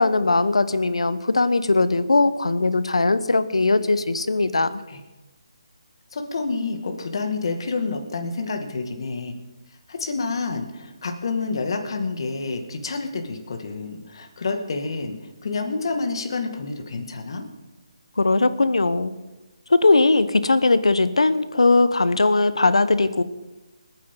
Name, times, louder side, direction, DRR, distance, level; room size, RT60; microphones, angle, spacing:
voice 1, 0.0-4.8 18.2-19.1 19.7-23.2, left 3 dB, 85° left, 14 dB, 1.0 m, -19 dB
voice 2, 6.1-9.3 9.9-17.4, left 3 dB, 55° left, 5 dB, 2.1 m, -28 dB
28.5 x 9.5 x 3.9 m, 1.1 s
figure-of-eight pair, 155°, 3 cm